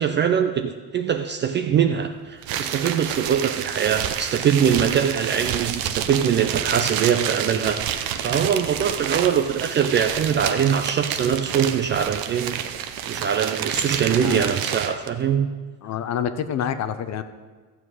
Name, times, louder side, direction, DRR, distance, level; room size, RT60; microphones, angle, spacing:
voice 1, 0.0-12.6 13.1-15.5, right 8 dB, 25° right, 6 dB, 0.4 m, -22 dB
sound 1, 2.4-15.1, right 9 dB, 50° right, 0.8 m, -29 dB
voice 2, 15.8-17.2, left 9 dB, 35° left, 11 dB, 0.7 m, -27 dB
13.5 x 7.6 x 4.8 m, 1.4 s
supercardioid pair, 120°, 46 cm